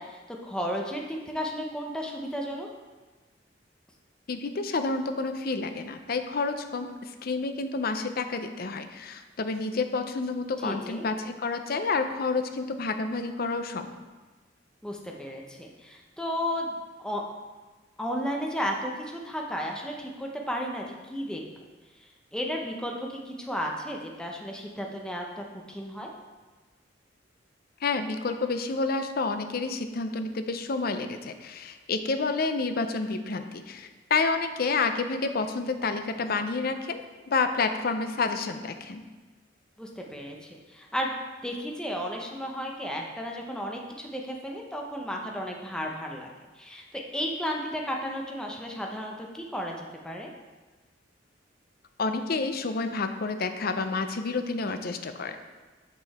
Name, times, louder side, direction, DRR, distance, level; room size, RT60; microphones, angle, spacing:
voice 1, 0.0-2.7 10.6-11.0 14.8-17.2 18.0-21.4 22.3-26.1 39.8-41.1 41.4-46.3 46.6-50.3, equal, 5° left, 0 dB, 0.7 m, -33 dB
voice 2, 4.3-13.9 27.8-37.0 37.3-39.0 52.0-55.4, left 4 dB, 55° left, 8 dB, 0.6 m, -29 dB
6.9 x 6.3 x 4.2 m, 1.3 s
head